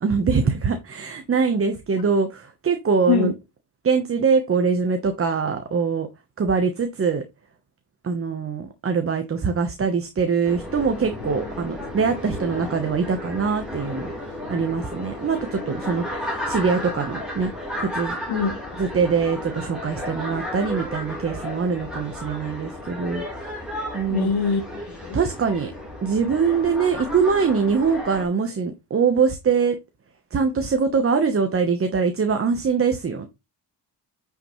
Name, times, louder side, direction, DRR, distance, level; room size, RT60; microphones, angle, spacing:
voice 1, 0.0-3.3 3.8-6.1 6.4-7.2 8.0-17.5 17.8-18.2 18.8-23.4 23.9-24.3 25.1-25.7 26.0-29.8 30.3-33.3, right 5 dB, 35° right, 1.0 m, -23 dB
sound 1, 10.4-28.2, left 1 dB, ahead, 3.9 m, -33 dB
voice 2, 24.1-25.2, left 5 dB, 65° left, 2.5 m, -23 dB
9.7 x 5.9 x 3.1 m
wide cardioid pair, 150°, 41 cm